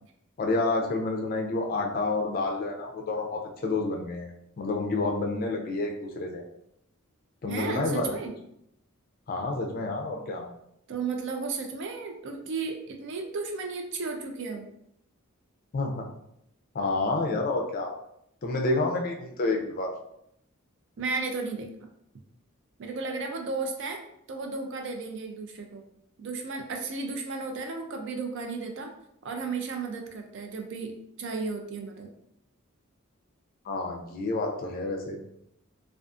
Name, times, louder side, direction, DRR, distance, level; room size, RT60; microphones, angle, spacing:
voice 1, 0.4-4.3 4.6-6.4 7.4-8.1 9.3-10.4 15.7-16.1 16.7-17.9 18.4-19.9 33.6-35.2, left 2 dB, 40° left, 1 dB, 0.4 m, -29 dB
voice 2, 7.5-8.3 10.9-14.7 21.0-21.7 22.8-24.0 24.3-25.8 26.2-28.9 29.2-30.9 31.2-32.1, right 4 dB, 55° right, 3 dB, 0.4 m, -34 dB
2.4 x 2.3 x 2.4 m, 0.76 s
head